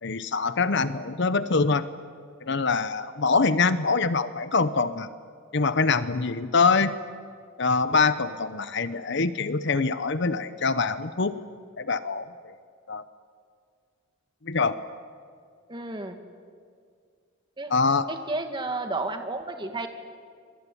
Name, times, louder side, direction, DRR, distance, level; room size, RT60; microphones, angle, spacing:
voice 1, 0.0-1.8 2.4-5.1 5.5-6.9 7.6-11.4 11.8-12.5 12.9-13.0 14.4-14.7 17.7-18.1, left 4 dB, 60° left, 12 dB, 0.9 m, -24 dB
voice 2, 15.7-16.2 17.6-17.7 18.1-19.9, right 2 dB, 25° right, 6 dB, 2.1 m, -32 dB
26.5 x 22.5 x 10.0 m, 2.1 s
head